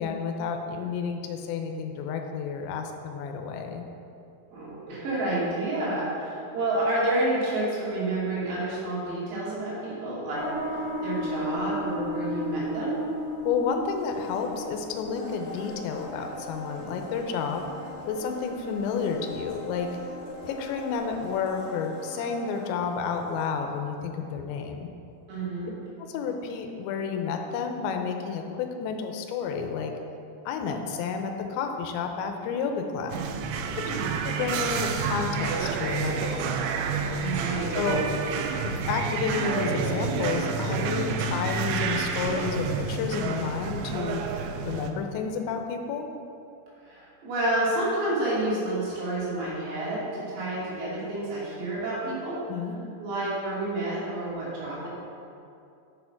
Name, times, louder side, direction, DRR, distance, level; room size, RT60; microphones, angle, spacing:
voice 1, 0.0-3.8 13.4-17.7 18.1-19.9 20.4-24.9 26.1-29.9 30.5-33.2 34.2-36.5 37.7-38.1 38.6-44.2 44.7-46.1 52.5-52.8, left 6 dB, 80° left, 4 dB, 2.9 m, -30 dB
voice 2, 4.5-10.4 11.0-12.9 25.3-25.7 33.9-34.1 37.2-37.7 46.8-52.4 53.0-54.9, right 1 dB, 65° right, -8 dB, 4.7 m, -29 dB
sound 1, 10.3-21.5, equal, 50° right, 3.7 m, -37 dB
Domestic sounds home sounds, 13.9-23.9 24.2-24.3, left 1 dB, 65° left, 1.2 m, -42 dB
sound 2, 33.1-44.9, right 5 dB, 85° right, 2.9 m, -29 dB
8.0 x 6.7 x 5.8 m, 2.6 s
omnidirectional pair, 5.4 m